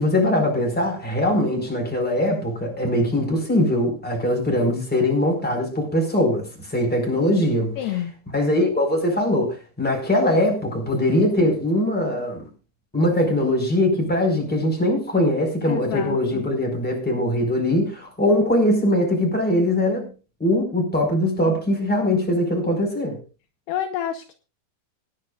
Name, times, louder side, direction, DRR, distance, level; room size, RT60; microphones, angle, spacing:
voice 1, 0.0-8.0 8.3-12.4 12.9-20.1 20.4-23.2, left 1 dB, ahead, 4.0 m, -21 dB
voice 2, 7.8-8.1 15.7-16.4 23.7-24.3, left 11 dB, 75° left, 2.8 m, -28 dB
25.0 x 10.0 x 2.4 m
omnidirectional pair, 5.1 m